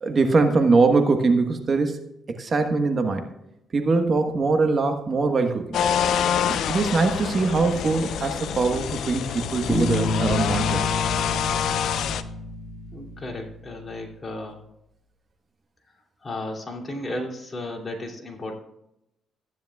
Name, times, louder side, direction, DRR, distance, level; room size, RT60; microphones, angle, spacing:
voice 1, 0.0-2.0 2.4-3.3 3.7-5.8 6.5-10.8, right 3 dB, 40° right, 5 dB, 1.3 m, -22 dB
sound 1, 5.7-12.2, left 8 dB, 75° left, 0.6 m, -26 dB
Bass guitar, 9.7-13.4, left 2 dB, 5° left, 2.3 m, -28 dB
voice 2, 12.9-14.6 16.2-18.5, left 1 dB, 30° left, 0 dB, 2.8 m, -34 dB
15.0 x 10.0 x 2.3 m, 0.84 s
cardioid pair, 90°, 0 cm